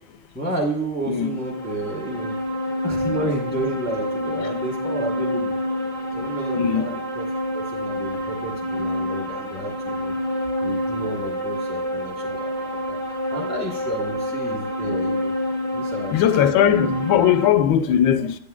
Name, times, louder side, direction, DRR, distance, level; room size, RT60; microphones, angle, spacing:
voice 1, 0.3-2.4 2.8-5.6 6.1-7.2 7.5-10.1 10.6-13.0 13.3-15.3 15.7-16.1, right 1 dB, 10° left, 0.7 m, -31 dB
voice 2, 1.1-1.4 6.6-6.8 16.1-18.4, left 10 dB, 85° left, 1.3 m, -19 dB
sound 1, 1.2-17.5, left 1 dB, 15° right, 1.3 m, -27 dB
9.2 x 8.3 x 2.4 m
omnidirectional pair, 2.1 m